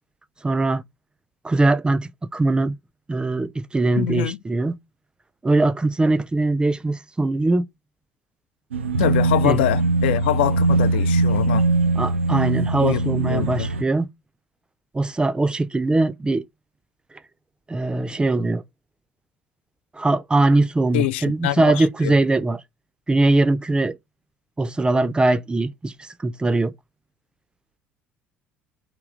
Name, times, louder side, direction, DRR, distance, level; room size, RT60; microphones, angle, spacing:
voice 1, 0.4-0.8 1.4-2.7 3.1-4.8 5.4-7.6 9.4-9.6 12.0-14.1 14.9-16.5 17.7-18.6 19.9-22.6 23.1-24.0 24.6-26.7, right 2 dB, 15° right, 0.4 m, -21 dB
voice 2, 4.0-4.4 9.0-11.7 12.8-13.7 20.9-21.9, left 13 dB, 65° left, 0.4 m, -24 dB
sound 1, 8.7-13.8, right 3 dB, 75° right, 0.4 m, -21 dB
3.7 x 2.9 x 4.8 m
figure-of-eight pair, 60°, 6 cm